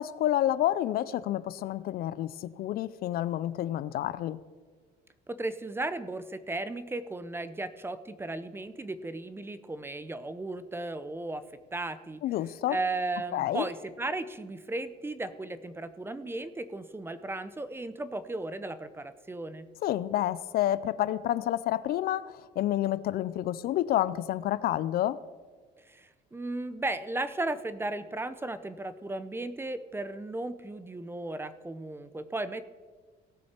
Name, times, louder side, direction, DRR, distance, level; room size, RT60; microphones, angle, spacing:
voice 1, 0.0-4.4 12.2-12.8 13.3-13.7 19.8-25.2, left 13 dB, 65° left, 17 dB, 0.4 m, -29 dB
voice 2, 5.3-11.4 11.7-12.2 12.7-19.7 25.9-32.6, right 2 dB, 15° right, 13 dB, 0.6 m, -35 dB
18.0 x 6.3 x 4.4 m, 1.5 s
cardioid pair, 110°, 17 cm